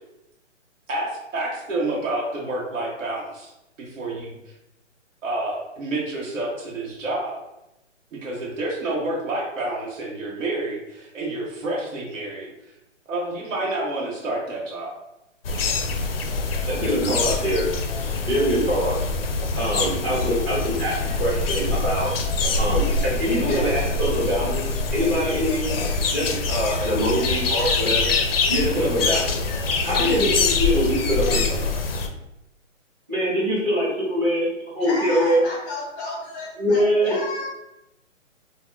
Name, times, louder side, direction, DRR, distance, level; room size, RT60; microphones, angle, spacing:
voice 1, 0.9-3.5 3.8-4.3 5.2-7.4 8.1-12.5 13.1-14.9, right 2 dB, 75° right, 1.0 m, -29 dB
sound 1, 15.4-32.1, left 3 dB, 50° left, 0.4 m, -24 dB
voice 2, 16.7-17.7 18.2-19.0 19.6-22.1 22.6-24.7 24.9-25.7 26.1-28.1 28.5-29.4 29.8-31.7 33.1-35.4 36.6-37.2, equal, 15° right, 0.9 m, -23 dB
voice 3, 34.8-37.5, left 2 dB, 15° left, 0.8 m, -32 dB
4.0 x 2.2 x 2.2 m
hypercardioid pair, 150°, 38 cm